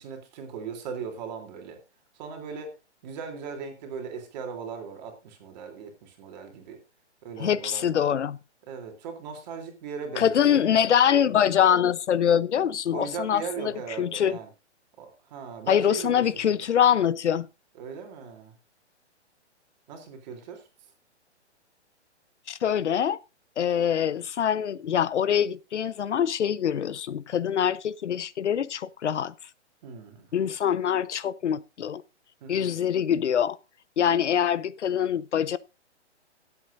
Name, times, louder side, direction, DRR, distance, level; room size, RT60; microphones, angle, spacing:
voice 1, 0.0-1.8 2.2-2.7 3.0-6.8 7.2-8.0 8.7-10.6 12.9-14.5 15.0-16.7 17.8-18.5 19.9-20.6 29.8-30.3 32.4-32.7, right 6 dB, 40° right, 3.2 m, -38 dB
voice 2, 7.4-8.4 10.2-14.4 15.7-17.5 22.5-23.2 23.6-29.3 30.3-32.0 32.5-33.6 34.0-35.6, left 9 dB, 75° left, 0.9 m, -24 dB
21.0 x 8.4 x 2.6 m
hypercardioid pair, 145°, 35 cm